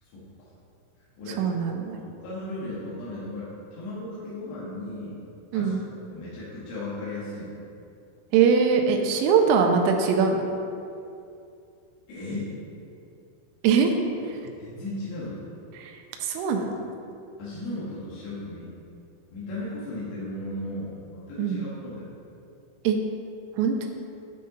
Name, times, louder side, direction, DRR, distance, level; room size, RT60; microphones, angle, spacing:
voice 1, 0.0-0.5 1.2-5.2 5.5-5.8 6.1-7.6 12.1-12.5 14.6-15.4 17.4-18.7 19.3-22.1, left 2 dB, 70° left, -9 dB, 3.5 m, -36 dB
voice 2, 1.4-2.0 5.5-5.8 8.3-10.5 13.6-13.9 14.2-14.4 15.8-16.9 21.4-21.7 22.8-23.0 23.6-23.9, right 6 dB, 85° right, 3 dB, 3.1 m, -22 dB
9.6 x 5.4 x 3.9 m, 2.6 s
omnidirectional pair, 5.9 m